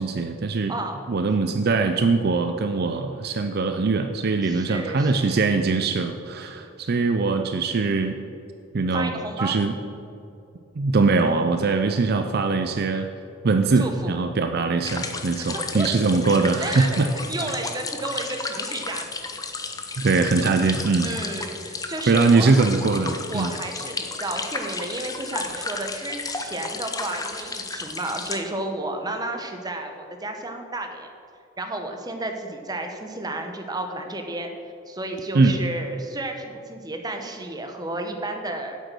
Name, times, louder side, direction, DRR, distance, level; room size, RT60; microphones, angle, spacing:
voice 1, 0.0-0.8 1.1-8.2 8.7-9.1 9.4-9.8 10.8-13.1 13.4-17.1 20.0-21.1 22.1-23.5 35.3-35.6, right 3 dB, 50° right, 6 dB, 0.5 m, -22 dB
voice 2, 0.7-1.1 4.4-5.5 8.9-9.5 13.7-14.2 15.4-15.9 16.6-19.3 21.0-22.5 23.3-31.1 31.6-34.5 34.9-38.8, right 2 dB, 20° right, 4 dB, 0.9 m, -32 dB
sound 1, 14.8-28.4, left 4 dB, 20° left, 0.7 m, -33 dB
8.2 x 7.9 x 6.1 m, 2.6 s
head